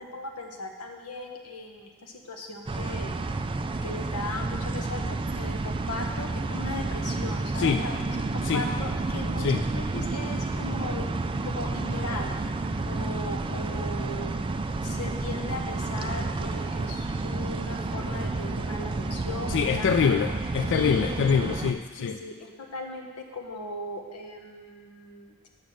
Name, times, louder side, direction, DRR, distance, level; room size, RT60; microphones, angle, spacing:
voice 1, 0.0-3.2 3.8-11.1 11.4-14.4 14.8-20.1 20.7-21.5 22.0-25.5, left 2 dB, 85° left, 2 dB, 1.2 m, -38 dB
sound 1, 2.7-21.7, right 3 dB, 25° right, 0.3 m, -30 dB
voice 2, 19.5-22.2, left 6 dB, 55° left, 7 dB, 0.3 m, -25 dB
9.2 x 6.2 x 6.3 m, 1.5 s
head